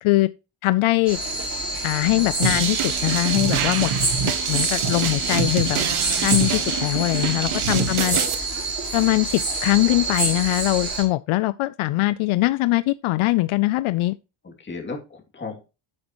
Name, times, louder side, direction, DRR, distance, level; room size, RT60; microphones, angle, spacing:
voice 1, 0.6-1.2 1.8-3.9 4.2-5.8 6.2-8.2 8.9-14.1, left 19 dB, 75° left, 0.6 m, -22 dB
sound 1, 1.1-11.0, right 2 dB, 30° right, 4.6 m, -27 dB
sound 2, 2.4-8.3, right 8 dB, 85° right, 1.6 m, -25 dB
voice 2, 7.3-7.9 14.4-15.6, left 4 dB, 20° left, 2.6 m, -36 dB
9.9 x 8.2 x 3.0 m
cardioid pair, 170°, 49 cm